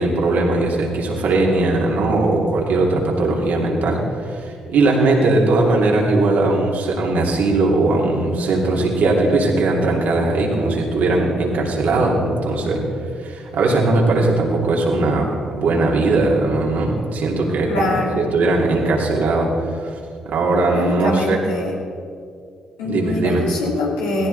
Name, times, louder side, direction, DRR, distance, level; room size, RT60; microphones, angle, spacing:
voice 1, 0.0-12.8 13.2-17.9 18.2-20.0 20.3-21.4 22.8-23.4, right 2 dB, 70° right, -2 dB, 2.9 m, -19 dB
voice 2, 17.7-18.2 20.7-21.8 22.8-24.3, left 2 dB, 85° left, -3 dB, 2.8 m, -23 dB
17.5 x 15.0 x 4.2 m, 2.3 s
hypercardioid pair, 45°, 3 cm